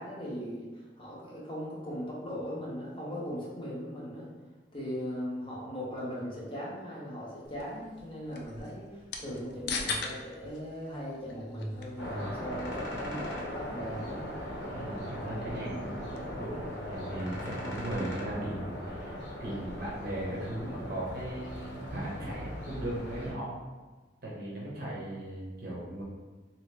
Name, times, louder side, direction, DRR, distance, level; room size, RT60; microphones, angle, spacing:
voice 1, 0.0-4.3 4.7-14.3, equal, 30° left, -6 dB, 0.9 m, -39 dB
sound 1, 7.4-18.1, left 4 dB, 65° left, 0.4 m, -43 dB
sound 2, 12.0-23.3, equal, 80° left, 0.8 m, -39 dB
voice 2, 14.7-23.5 24.2-26.0, right 1 dB, 55° right, -6 dB, 0.9 m, -37 dB
3.0 x 2.7 x 3.2 m, 1.3 s
head